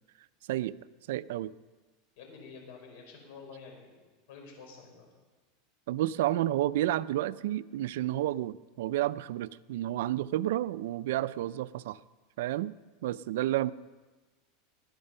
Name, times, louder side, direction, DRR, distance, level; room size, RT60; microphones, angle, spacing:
voice 1, 1.1-1.5 5.9-12.0 12.4-12.7 13.0-13.7, right 14 dB, 75° right, 14 dB, 0.4 m, -30 dB
voice 2, 2.2-5.1, left 5 dB, 65° left, 3 dB, 4.6 m, -49 dB
19.5 x 9.5 x 5.5 m, 1.3 s
supercardioid pair, 150°, 0 cm